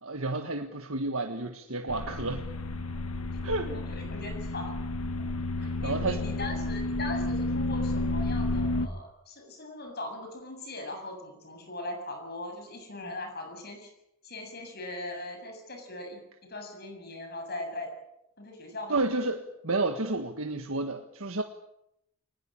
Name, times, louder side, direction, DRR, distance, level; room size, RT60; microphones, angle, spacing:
voice 1, 0.0-2.4 3.4-3.7 5.6-6.2 18.9-21.4, right 2 dB, 70° right, 5 dB, 1.7 m, -31 dB
sound 1, 1.9-8.9, left 2 dB, 90° left, 1.8 m, -31 dB
voice 2, 3.6-4.7 5.8-13.9 14.2-17.9 18.4-19.0, left 2 dB, 45° left, 4 dB, 7.5 m, -40 dB
23.5 x 20.5 x 8.8 m, 0.79 s
head